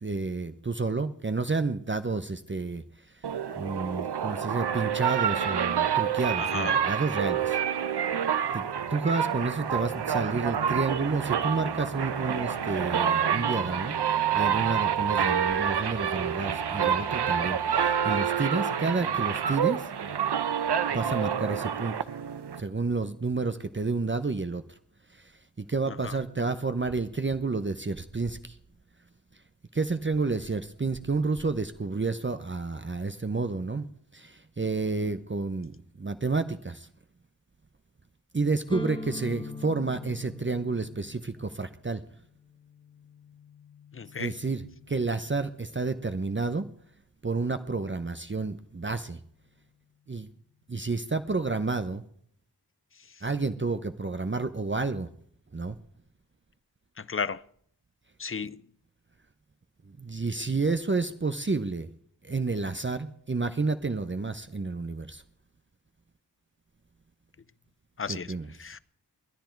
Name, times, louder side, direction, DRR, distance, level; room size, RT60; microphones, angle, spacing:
voice 1, 0.0-2.8 3.2-3.3 3.6-7.6 8.5-14.0 14.3-19.9 20.9-21.9 22.6-24.6 25.1-25.3 25.6-28.6 29.7-33.9 34.1-36.9 38.3-42.0 44.2-46.7 47.2-49.2 50.1-50.3 50.7-52.0 53.2-55.1 55.5-55.8 59.9-61.9 62.2-65.2 68.1-68.7, right 3 dB, 30° right, 0.8 m, -30 dB
sound 1, 3.2-22.6, right 8 dB, 80° right, 0.8 m, -28 dB
voice 2, 6.4-6.8 25.9-26.1 43.9-44.3 57.0-57.4 58.2-58.6 68.0-68.3 68.6-68.8, left 5 dB, 35° left, 0.6 m, -34 dB
sound 2, 9.6-18.2, right 5 dB, 60° right, 1.2 m, -42 dB
sound 3, 38.7-46.5, left 2 dB, 10° left, 1.4 m, -43 dB
21.0 x 10.5 x 4.6 m
wide cardioid pair, 50°, 39 cm